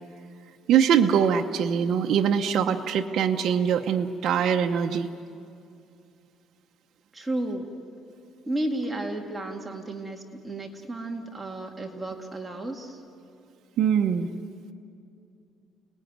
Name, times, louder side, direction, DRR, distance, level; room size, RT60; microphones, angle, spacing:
voice 1, 0.7-5.1 13.8-14.3, right 8 dB, 55° right, 3 dB, 0.9 m, -23 dB
voice 2, 7.1-7.7 8.5-13.0, right 1 dB, 10° right, 1 dB, 2.0 m, -32 dB
30.0 x 19.5 x 9.4 m, 2.6 s
cardioid pair, 140°, 0 cm